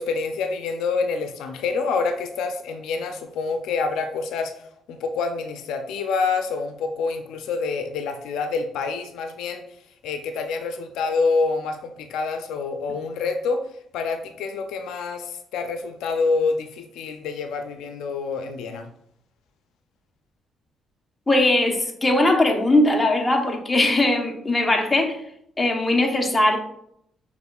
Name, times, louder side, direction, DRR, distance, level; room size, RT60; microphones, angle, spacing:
voice 1, 0.0-9.6 10.0-13.6 13.9-18.9, left 4 dB, 85° left, 6 dB, 0.4 m, -27 dB
voice 2, 21.3-25.2 25.6-26.6, left 1 dB, 15° left, 2 dB, 0.9 m, -20 dB
5.9 x 3.5 x 2.3 m, 0.71 s
cardioid pair, 90°, 0 cm